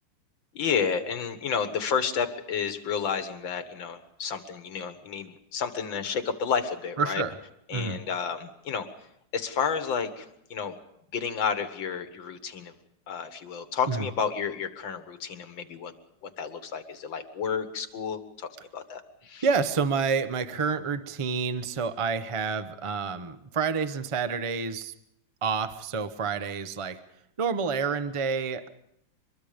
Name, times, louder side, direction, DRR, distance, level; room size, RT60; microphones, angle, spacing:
voice 1, 0.5-7.2 7.7-8.9 9.3-10.7 11.1-12.7 13.1-15.9 16.2-19.5, left 6 dB, 85° left, 9 dB, 2.2 m, -31 dB
voice 2, 7.0-7.4 7.7-8.0 13.9-14.1 19.4-24.9 25.4-27.0 27.4-28.7, right 5 dB, 55° right, 11 dB, 0.3 m, -28 dB
24.5 x 22.0 x 5.1 m, 0.76 s
omnidirectional pair, 2.1 m